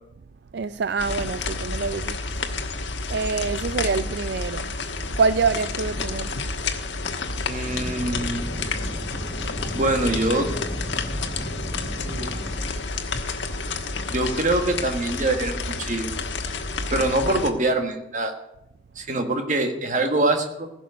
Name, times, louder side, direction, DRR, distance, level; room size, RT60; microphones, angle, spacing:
voice 1, 0.5-2.2 3.1-4.7 5.1-6.4, right 5 dB, 65° right, 0.4 m, -25 dB
sound 1, 1.0-17.5, left 3 dB, 75° left, 1.3 m, -30 dB
voice 2, 7.5-8.4 9.7-10.5 11.9-12.4 14.1-16.1 16.9-18.3 18.9-20.7, right 2 dB, 40° right, 1.6 m, -24 dB
sound 2, 7.7-12.7, equal, ahead, 0.8 m, -36 dB
15.5 x 6.3 x 9.4 m
head